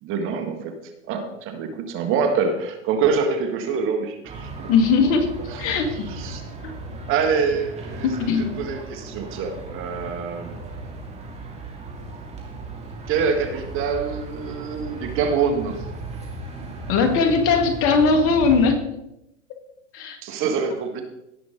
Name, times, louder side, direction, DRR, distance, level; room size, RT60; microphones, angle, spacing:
voice 1, 0.0-4.7 5.5-5.8 6.1-6.4 7.1-10.5 13.1-15.9 16.1-16.2 20.2-21.0, right 5 dB, 35° right, 6 dB, 1.5 m, -25 dB
sound 1, 4.3-18.7, right 3 dB, 20° right, 2.4 m, -36 dB
voice 2, 4.7-6.1 6.6-6.7 8.0-8.6 16.9-18.9 19.9-20.2, left 4 dB, 35° left, 6 dB, 1.8 m, -20 dB
17.5 x 6.0 x 3.8 m, 0.85 s
hypercardioid pair, 120°, 37 cm